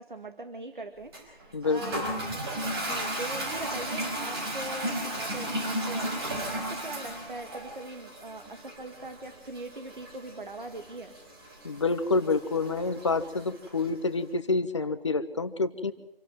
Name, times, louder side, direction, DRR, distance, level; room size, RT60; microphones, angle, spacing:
voice 1, 0.0-6.3 6.5-11.1, right 2 dB, 55° right, 7 dB, 1.9 m, -41 dB
Toilet flush, 1.1-13.9, right 1 dB, 25° right, 5.5 m, -35 dB
voice 2, 1.5-2.1 11.6-15.9, left 3 dB, 30° left, 12 dB, 1.2 m, -28 dB
27.0 x 12.0 x 9.2 m, 0.85 s
figure-of-eight pair, 155°, 29 cm